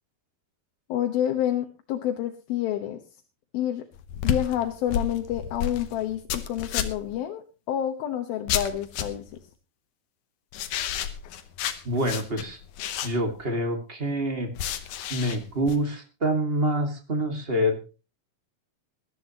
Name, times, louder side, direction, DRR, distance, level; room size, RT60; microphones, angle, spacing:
voice 1, 0.9-3.0 3.5-3.8 4.2-9.3, left 11 dB, 85° left, 4 dB, 2.9 m, -28 dB
sound 1, 3.9-7.2 8.5-9.3 10.5-13.4 14.6-15.8, left 9 dB, 65° left, 2.3 m, -31 dB
voice 2, 11.8-12.6 13.0-14.5 15.1-17.8, equal, 25° right, 4 dB, 1.5 m, -26 dB
21.0 x 12.5 x 3.0 m, 0.31 s
omnidirectional pair, 4.2 m